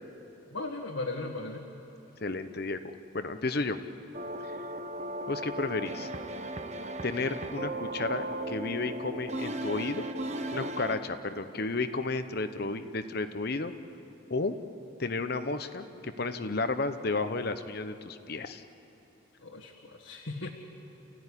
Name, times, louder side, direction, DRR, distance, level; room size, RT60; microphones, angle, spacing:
voice 1, 0.5-1.7 19.4-20.5, left 2 dB, 80° left, -1 dB, 1.8 m, -37 dB
voice 2, 2.2-2.8 3.1-3.8 4.4-4.6 5.3-6.1 7.0-10.1 10.5-13.7 14.3-14.5 15.0-18.6, left 3 dB, 50° left, 10 dB, 0.9 m, -32 dB
sound 1, 4.1-11.0, right 1 dB, 35° right, 1.0 m, -36 dB
29.5 x 15.5 x 9.9 m, 2.9 s
head